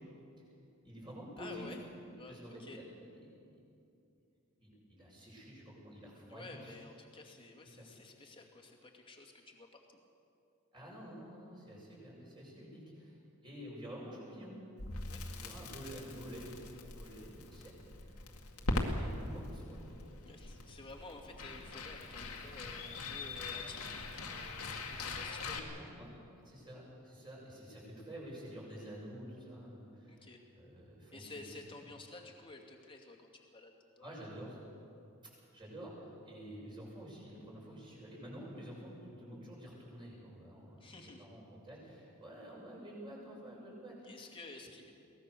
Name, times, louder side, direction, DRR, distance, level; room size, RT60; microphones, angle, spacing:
voice 1, 0.8-1.6 2.3-3.4 4.6-6.8 7.7-7.9 10.7-13.1 13.4-14.5 15.3-17.7 18.5-19.8 25.1-25.2 25.4-30.3 30.6-31.5 34.0-34.6 35.5-44.2, equal, 20° right, -4 dB, 6.7 m, -49 dB
voice 2, 1.4-1.8 2.2-2.8 6.3-10.0 15.1-15.6 20.2-25.5 30.1-30.4 31.1-34.3 40.8-41.3 44.0-44.9, left 2 dB, 25° left, 0 dB, 2.4 m, -52 dB
Crackle, 14.8-25.6, left 2 dB, 85° left, 2.2 m, -41 dB
23.0 x 18.5 x 6.9 m, 2.6 s
head